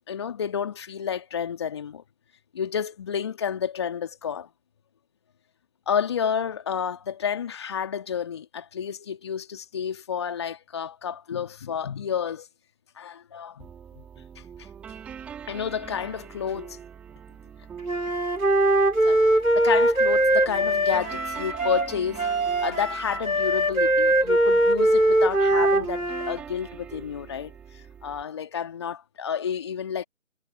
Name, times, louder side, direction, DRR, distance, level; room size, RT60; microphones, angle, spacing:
voice 1, 0.1-2.0 2.5-4.5 5.9-12.5 13.0-13.7 13.9-14.0 14.4-14.7 15.5-16.8 19.1-19.2 19.5-22.3 22.6-27.5 28.0-30.0, left 7 dB, 20° left, 2.4 m, -30 dB
sound 1, 13.6-28.2, right 8 dB, 5° right, 2.3 m, -44 dB
Wind instrument woodwind instrument, 17.9-26.4, right 1 dB, 85° right, 5.5 m, -22 dB
figure-of-eight pair, 160°, 40 cm